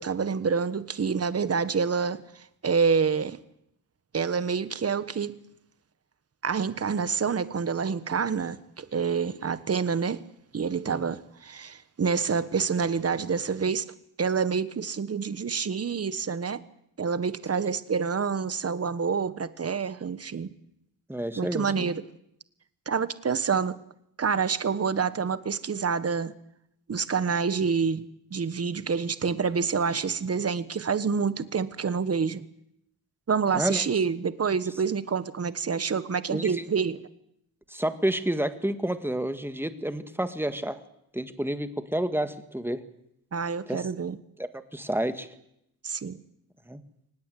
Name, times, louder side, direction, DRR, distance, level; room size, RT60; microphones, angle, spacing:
voice 1, 0.0-2.2 2.6-3.4 4.1-5.3 6.4-10.2 10.5-13.8 14.2-16.6 17.0-20.5 21.3-22.0 22.9-23.8 24.2-26.3 26.9-28.0 28.3-32.4 33.3-37.0 43.3-44.2 45.8-46.2, right 5 dB, 40° right, 1.4 m, -27 dB
voice 2, 21.1-21.9 33.5-33.8 36.3-36.6 37.7-40.8 41.1-42.8 43.7-43.8 44.4-45.3 46.7-46.8, right 1 dB, 5° right, 1.7 m, -30 dB
23.5 x 19.0 x 9.3 m
wide cardioid pair, 125°, 37 cm